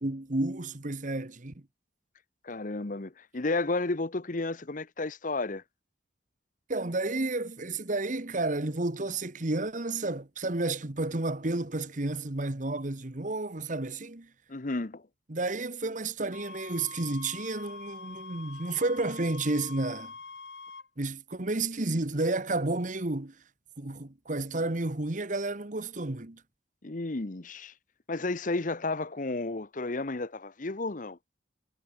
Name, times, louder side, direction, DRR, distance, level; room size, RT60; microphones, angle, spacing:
voice 1, 0.0-1.5 6.7-14.3 15.3-20.1 21.0-23.3 23.8-26.4, right 2 dB, 45° right, 1.4 m, -31 dB
voice 2, 2.4-5.6 14.5-15.0 26.8-27.7 28.1-31.2, left 2 dB, 45° left, 1.0 m, -32 dB
sound 1, 16.3-20.9, left 4 dB, 70° left, 6.5 m, -45 dB
head